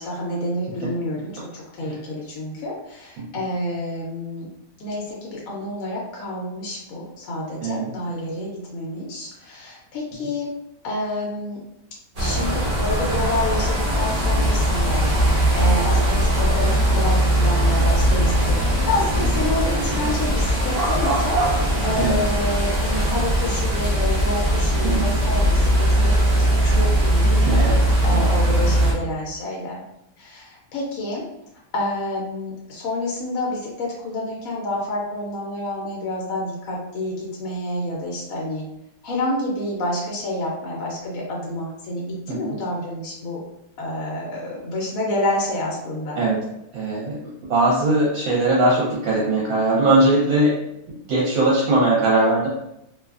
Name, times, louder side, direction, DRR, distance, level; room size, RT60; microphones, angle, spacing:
voice 1, 0.0-4.5 4.8-10.5 10.8-11.6 12.2-21.4 21.8-29.8 30.2-31.2 31.7-38.7 39.0-43.4 43.8-46.2, left 1 dB, 75° left, -3 dB, 1.0 m, -28 dB
sound 1, 12.2-28.9, right 1 dB, 45° right, 0.5 m, -20 dB
voice 2, 27.4-27.8 28.1-28.3 42.3-42.5 46.2-46.4 46.7-50.5 50.9-52.5, right 2 dB, 75° right, -6 dB, 1.1 m, -20 dB
2.7 x 2.2 x 2.3 m, 0.84 s
omnidirectional pair, 1.5 m